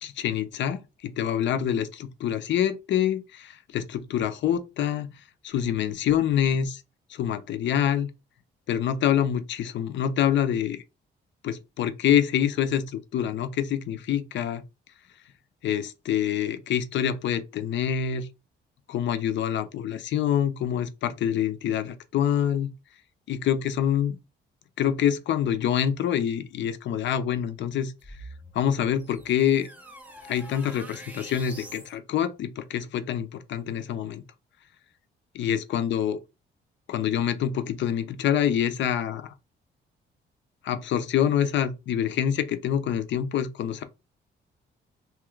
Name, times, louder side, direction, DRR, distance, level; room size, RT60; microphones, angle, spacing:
voice 1, 0.0-5.1 5.4-6.8 7.1-8.1 8.7-10.8 11.4-14.6 15.6-18.3 18.9-22.7 23.3-24.2 24.8-27.9 28.5-29.7 30.3-34.2 35.3-36.2 36.9-39.3 40.6-43.8, left 9 dB, 70° left, 0.6 m, -26 dB
sound 1, 28.0-31.9, right 1 dB, 5° right, 0.7 m, -45 dB
2.9 x 2.4 x 3.0 m
cardioid pair, 90°, 20 cm